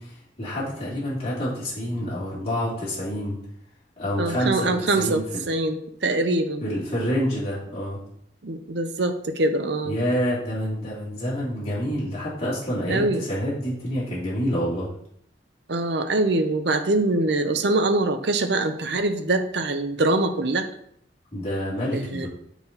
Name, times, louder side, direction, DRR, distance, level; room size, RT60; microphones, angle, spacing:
voice 1, 0.0-3.4 4.0-5.4 6.6-8.0 9.8-14.9 21.3-22.3, equal, 35° left, -8 dB, 2.6 m, -27 dB
voice 2, 4.2-6.6 8.4-10.0 12.9-13.2 15.7-20.7 21.9-22.3, right 2 dB, 70° right, 7 dB, 0.7 m, -24 dB
7.1 x 4.5 x 4.0 m, 0.68 s
head